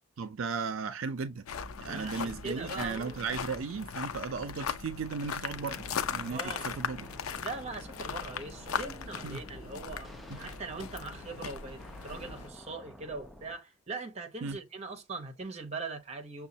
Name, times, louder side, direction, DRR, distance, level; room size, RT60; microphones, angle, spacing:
voice 1, 0.2-1.5 1.8-6.4 6.6-7.1 9.2-9.4 10.3-10.4 14.4-14.6, right 5 dB, 75° right, 0.5 m, -36 dB
sound 1, 1.5-12.5, left 7 dB, 85° left, 0.5 m, -39 dB
voice 2, 1.8-3.2 6.3-6.7 7.4-16.5, right 3 dB, 30° right, 0.8 m, -41 dB
sound 2, 5.5-13.5, equal, ahead, 0.5 m, -51 dB
6.2 x 2.3 x 2.7 m
head